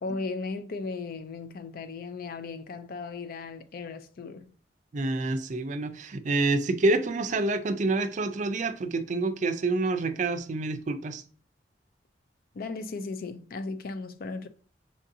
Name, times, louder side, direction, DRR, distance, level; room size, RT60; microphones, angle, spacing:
voice 1, 0.0-4.5 12.5-14.5, left 3 dB, 55° left, 0.4 m, -36 dB
voice 2, 4.9-11.2, right 2 dB, 45° right, 0.4 m, -27 dB
6.3 x 2.6 x 2.6 m
head